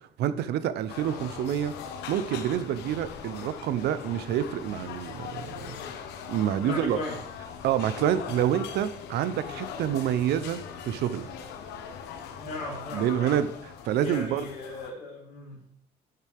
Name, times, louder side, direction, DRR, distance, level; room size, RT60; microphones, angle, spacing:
voice 1, 0.2-1.7 2.1-5.8 6.3-7.0 7.6-10.6 10.8-11.3 12.9-13.5 13.8-14.5, right 10 dB, 75° right, 13 dB, 0.9 m, -27 dB
sound 1, 0.9-14.9, left 7 dB, 80° left, 1.3 m, -41 dB
voice 2, 6.6-7.2 12.3-13.4 14.0-15.6, left 2 dB, 60° left, -7 dB, 4.1 m, -36 dB
12.5 x 8.0 x 3.7 m, 0.68 s
cardioid pair, 110°, 17 cm